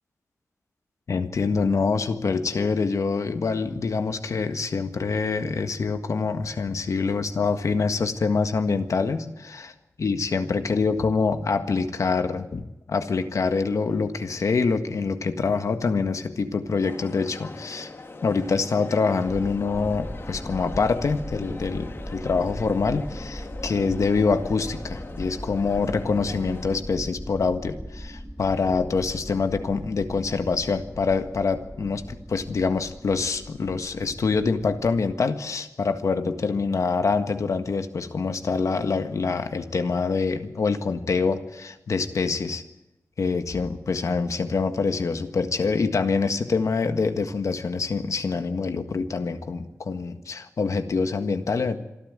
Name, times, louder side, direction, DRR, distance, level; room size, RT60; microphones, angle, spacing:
voice 1, 1.1-9.7 10.0-17.9 18.2-42.6 43.2-51.8, left 4 dB, 75° left, 8 dB, 1.6 m, -25 dB
Crowd, 16.8-26.8, left 3 dB, 50° left, 2.2 m, -41 dB
sound 1, 19.2-35.1, equal, 5° left, 1.4 m, -39 dB
26.5 x 12.0 x 9.0 m, 0.94 s
wide cardioid pair, 110°, 5 cm